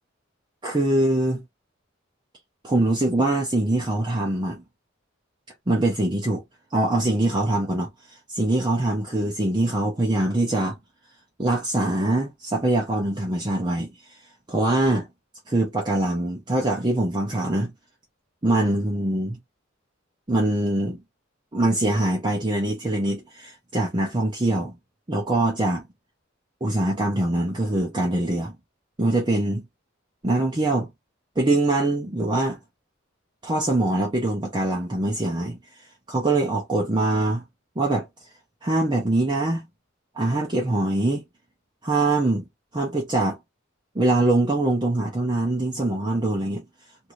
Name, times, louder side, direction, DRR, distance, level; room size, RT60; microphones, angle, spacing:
voice 1, 0.6-1.4 2.6-4.6 5.7-6.4 6.7-10.8 11.4-14.2 14.5-15.1 15.5-17.7 18.4-19.4 20.3-21.0 21.5-24.7 25.1-25.9 26.6-28.5 29.0-29.6 30.2-30.9 31.4-32.6 33.4-35.6 36.1-37.4 37.8-38.1 38.6-39.6 40.1-41.2 41.8-42.4 42.7-43.4 43.9-46.6, right 2 dB, 20° right, 0.6 m, -23 dB
2.7 x 2.5 x 3.0 m
head